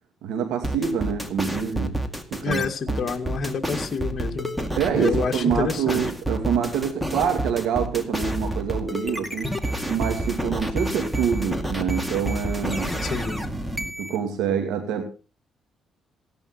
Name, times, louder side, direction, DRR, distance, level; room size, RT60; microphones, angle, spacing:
voice 1, 0.2-2.0 2.3-3.0 4.8-9.6 9.9-12.9 14.0-15.1, right 7 dB, 90° right, 5 dB, 2.2 m, -26 dB
sound 1, 0.6-14.2, right 1 dB, 5° right, 2.2 m, -29 dB
voice 2, 2.4-4.5 5.0-6.0 13.0-13.4, left 5 dB, 45° left, 3 dB, 2.0 m, -28 dB
17.0 x 10.5 x 4.3 m, 0.34 s
cardioid pair, 90°, 0 cm